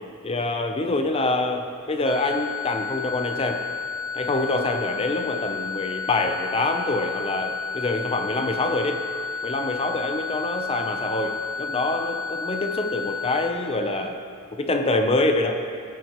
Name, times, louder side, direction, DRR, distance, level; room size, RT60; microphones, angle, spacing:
voice 1, 0.2-3.7 4.1-9.1 9.4-14.2 14.5-15.6, left 2 dB, 25° left, 5 dB, 0.7 m, -25 dB
sound 1, 2.1-13.5, left 5 dB, 5° right, 2.0 m, -32 dB
17.0 x 10.5 x 3.1 m, 2.2 s
head